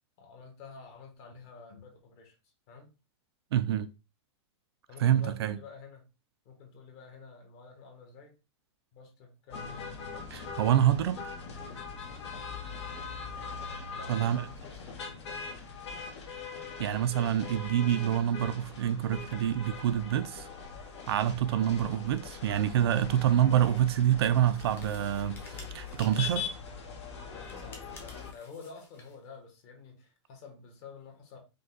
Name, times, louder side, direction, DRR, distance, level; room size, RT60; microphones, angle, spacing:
voice 1, 0.2-2.4 2.7-2.9 4.9-6.1 6.4-8.4 8.9-10.3 13.9-14.8 26.2-26.5 27.3-31.4, left 5 dB, 30° left, 1.2 m, -50 dB
voice 2, 3.5-3.9 5.0-5.6 10.3-11.3 14.1-14.5 16.8-20.5 21.1-26.4, right 10 dB, 55° right, 0.4 m, -27 dB
sound 1, 9.5-28.3, left 5 dB, 65° left, 1.3 m, -41 dB
sound 2, 24.5-26.6 27.4-29.2, left 3 dB, 15° left, 0.8 m, -52 dB
5.1 x 2.3 x 3.8 m
supercardioid pair, 175°, 15 cm